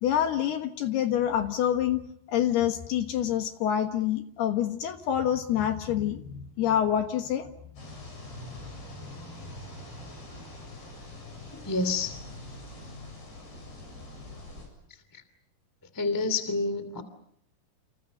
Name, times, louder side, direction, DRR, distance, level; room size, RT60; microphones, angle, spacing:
voice 1, 0.0-2.0 2.3-7.5, left 10 dB, 65° left, 6 dB, 2.8 m, -27 dB
sound 1, 7.8-14.7, left 2 dB, 50° left, 9.8 m, -43 dB
voice 2, 11.5-12.2 15.1-15.2 15.9-17.0, left 3 dB, 20° left, 11 dB, 0.5 m, -28 dB
29.5 x 29.5 x 5.5 m, 0.70 s
omnidirectional pair, 6.0 m